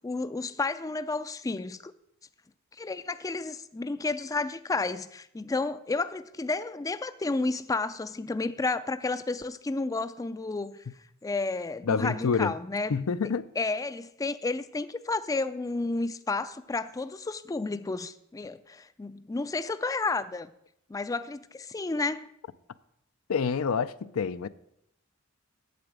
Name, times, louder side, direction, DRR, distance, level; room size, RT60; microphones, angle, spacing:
voice 1, 0.0-1.9 2.8-10.8 11.2-13.0 13.6-20.5 20.9-22.3, left 3 dB, 15° left, 0.4 m, -31 dB
voice 2, 11.8-12.5 12.9-13.5 23.3-24.5, left 5 dB, 85° left, 0.5 m, -27 dB
8.4 x 7.9 x 7.4 m
head